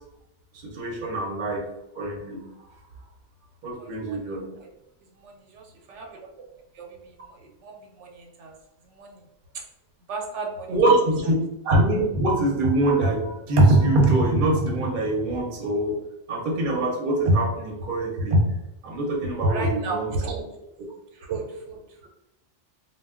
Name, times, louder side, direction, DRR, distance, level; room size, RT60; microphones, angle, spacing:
voice 1, 0.5-2.5 3.6-4.5 10.7-16.0 16.3-18.5 18.8-20.1, right 1 dB, 55° right, 0 dB, 0.7 m, -23 dB
voice 2, 3.7-4.7 5.1-6.3 6.7-8.5 8.8-9.3 9.5-9.6 10.1-10.8 19.5-20.4 21.1-22.1, right 4 dB, 85° right, 1 dB, 0.9 m, -35 dB
2.2 x 2.1 x 3.5 m, 0.88 s
omnidirectional pair, 1.2 m